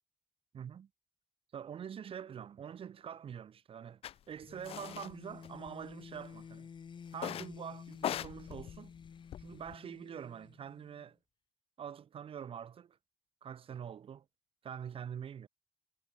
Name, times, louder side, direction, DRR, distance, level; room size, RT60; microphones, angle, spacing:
voice 1, 0.5-0.9 1.5-4.0 4.3-6.7 7.1-8.9 9.4-11.2 11.8-13.0 13.4-14.2 14.6-15.5, right 8 dB, 70° right, 1.3 m, -45 dB
sound 1, 4.0-4.1 4.6-5.1 5.4-6.2 7.1-7.6 7.9-9.7, left 11 dB, 80° left, 0.4 m, -40 dB
sound 2, 4.4-11.1, left 6 dB, 55° left, 0.7 m, -52 dB
cardioid pair, 65°, 10 cm